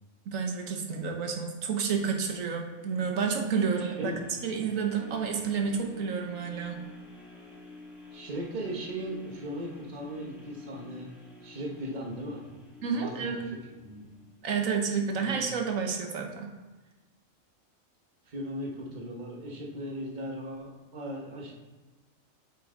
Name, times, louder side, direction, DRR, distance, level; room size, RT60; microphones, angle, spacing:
voice 1, 0.3-4.1 4.4-6.8 12.8-13.6 14.4-16.5, right 6 dB, 75° right, 3 dB, 1.4 m, -30 dB
sound 1, 2.7-14.8 15.3-15.4, left 3 dB, ahead, 1.5 m, -50 dB
voice 2, 3.8-4.2 8.1-11.1 11.4-12.4 12.9-13.6 13.8-14.0 15.1-15.4 18.2-21.6, right 1 dB, 35° right, -1 dB, 1.2 m, -38 dB
8.6 x 5.7 x 3.8 m, 1.2 s
omnidirectional pair, 1.4 m